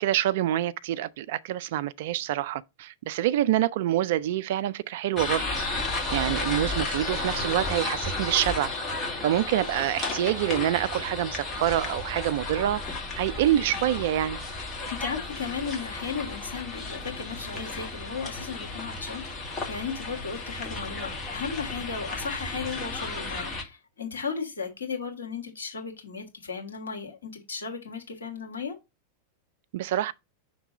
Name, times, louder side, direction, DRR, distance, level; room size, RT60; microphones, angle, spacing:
voice 1, 0.0-5.4 6.1-8.7 9.0-12.8 13.2-14.4 29.7-30.1, right 13 dB, 55° right, 0.3 m, -26 dB
sound 1, 5.2-23.6, left 2 dB, 25° left, 1.7 m, -33 dB
voice 2, 14.9-28.8, left 5 dB, 70° left, 1.8 m, -35 dB
5.9 x 3.3 x 5.2 m
figure-of-eight pair, 90°, 0 cm